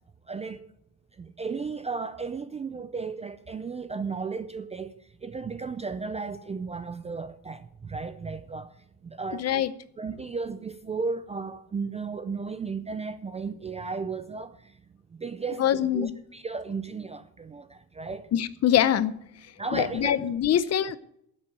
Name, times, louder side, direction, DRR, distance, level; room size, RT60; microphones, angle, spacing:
voice 1, 0.3-0.7 1.2-4.9 5.2-8.7 9.0-9.4 10.0-14.7 15.1-18.3 19.6-20.2, right 4 dB, 15° right, 0.4 m, -34 dB
voice 2, 9.4-9.7 15.6-16.1 18.3-19.1 19.7-21.0, left 10 dB, 40° left, 0.7 m, -24 dB
10.5 x 7.6 x 8.9 m
cardioid pair, 130°, 40 cm